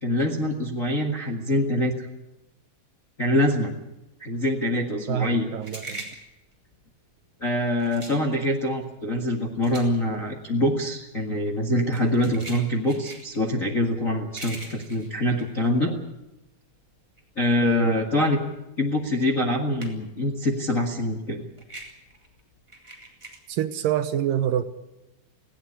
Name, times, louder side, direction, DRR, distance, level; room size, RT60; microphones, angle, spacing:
voice 1, 0.0-2.1 3.2-3.7 4.2-5.5 7.4-15.9 17.4-18.4 18.8-21.4, left 1 dB, 40° left, 1.2 m, -24 dB
voice 2, 5.1-6.0 17.6-18.0 23.5-24.7, right 10 dB, 75° right, 2.4 m, -26 dB
sound 1, 5.5-16.5 16.8-20.3 20.5-23.4, right 2 dB, 10° right, 3.4 m, -43 dB
18.5 x 17.0 x 9.9 m
omnidirectional pair, 4.3 m